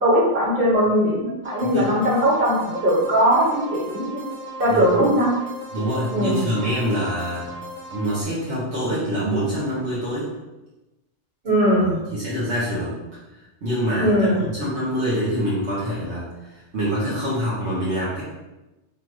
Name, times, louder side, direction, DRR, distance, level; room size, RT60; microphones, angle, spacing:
voice 1, 0.0-4.2 4.6-5.3 6.1-6.5 11.4-12.0 14.0-14.4, equal, 50° right, -7 dB, 1.7 m, -20 dB
sound 1, 1.4-8.2, right 1 dB, 15° right, 0.4 m, -37 dB
voice 2, 1.6-2.0 4.7-5.0 5.7-7.5 7.9-10.3 11.7-13.0 13.3-18.2, equal, 75° right, -9 dB, 1.4 m, -25 dB
3.7 x 2.5 x 4.6 m, 1.0 s
omnidirectional pair, 1.2 m